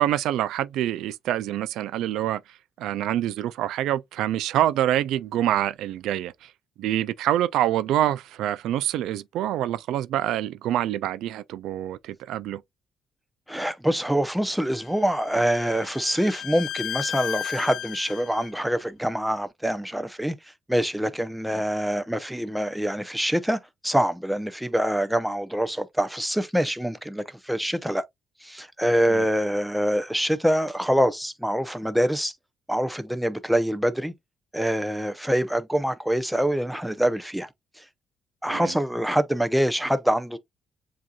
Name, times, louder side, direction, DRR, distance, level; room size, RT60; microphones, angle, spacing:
voice 1, 0.0-6.5 6.8-12.6 29.1-29.2 38.5-38.7, right 12 dB, 85° right, 0.3 m, -26 dB
voice 2, 13.5-20.3 20.7-28.0 28.4-32.3 32.7-34.1 34.5-37.5 37.8-37.9 38.4-40.4, equal, 5° right, 0.6 m, -25 dB
Bowed string instrument, 14.7-18.5, left 10 dB, 80° left, 0.7 m, -34 dB
7.4 x 2.7 x 2.3 m
cardioid pair, 110°, 0 cm